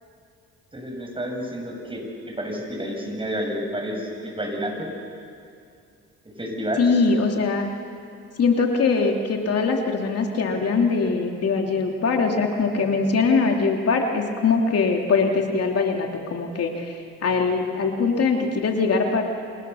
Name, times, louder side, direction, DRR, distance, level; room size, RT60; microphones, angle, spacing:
voice 1, 0.7-4.9 6.4-6.8, equal, 15° right, 1 dB, 7.3 m, -30 dB
voice 2, 6.8-7.7 8.4-19.2, left 4 dB, 55° left, 2 dB, 2.8 m, -22 dB
30.0 x 26.5 x 7.0 m, 2.4 s
cardioid pair, 90°, 30 cm